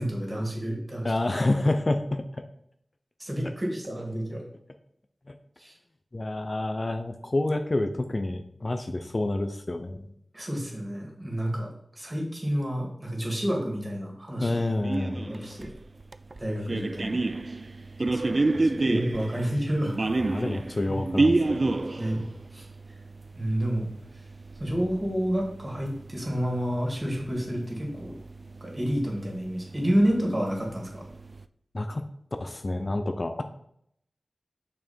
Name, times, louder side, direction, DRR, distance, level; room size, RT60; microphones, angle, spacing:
voice 1, 0.0-1.1 3.2-4.4 5.6-5.8 10.3-14.6 15.3-15.7 16.4-17.3 18.8-20.1 20.9-21.0 21.9-22.2 22.5-22.7 23.4-23.9 24.1-24.2 24.6-28.1 28.6-31.1, equal, 30° right, -1 dB, 2.5 m, -29 dB
voice 2, 1.0-2.4 5.3-5.4 6.1-10.1 14.4-15.3 18.1-18.7 20.2-21.7 31.7-32.0 32.4-33.4, left 2 dB, 45° left, 8 dB, 0.5 m, -29 dB
sound 1, 14.8-31.4, right 2 dB, 50° right, 0.3 m, -31 dB
6.0 x 4.4 x 4.4 m, 0.71 s
cardioid pair, 50°, 0 cm